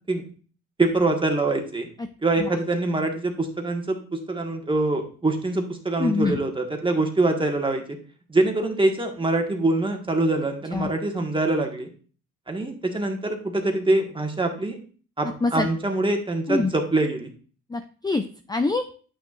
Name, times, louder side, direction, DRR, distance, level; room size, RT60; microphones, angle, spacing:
voice 1, 0.8-1.9 2.2-8.0 8.3-11.9 12.5-14.8 15.2-17.3, right 2 dB, 15° right, 3 dB, 1.6 m, -24 dB
voice 2, 6.0-6.4 10.7-10.9 15.2-15.7 16.5-16.7 17.7-18.9, left 3 dB, 15° left, 7 dB, 0.5 m, -25 dB
8.9 x 6.1 x 2.5 m, 0.40 s
cardioid pair, 90°, 30 cm